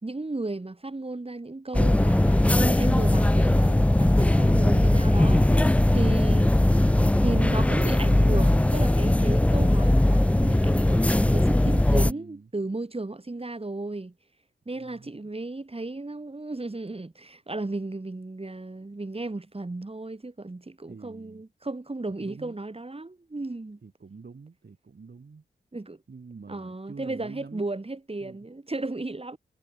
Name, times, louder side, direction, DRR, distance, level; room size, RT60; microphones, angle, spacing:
voice 1, 0.0-6.6 7.2-14.1 14.6-23.8 25.7-26.0 26.5-29.4, right 2 dB, 30° right, 5.0 m, -34 dB
sound 1, 1.7-12.1, left 1 dB, 5° left, 0.4 m, -20 dB
voice 2, 11.8-12.5 14.7-15.3 20.9-21.4 22.1-22.6 23.8-25.4 26.1-27.6 28.2-28.5, right 4 dB, 55° right, 6.6 m, -46 dB
cardioid pair, 45°, 21 cm